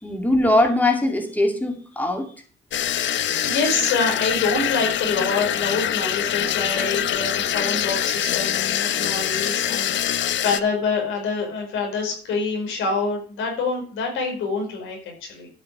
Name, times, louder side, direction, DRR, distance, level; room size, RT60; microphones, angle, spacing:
voice 1, 0.0-2.3 3.2-3.3, left 1 dB, 10° left, 4 dB, 2.4 m, -21 dB
sound 1, 2.7-10.6, left 11 dB, 70° left, 0.8 m, -24 dB
voice 2, 3.1-15.5, left 4 dB, 90° left, 2 dB, 5.0 m, -26 dB
12.0 x 5.8 x 6.6 m, 0.41 s
cardioid pair, 90°, 20 cm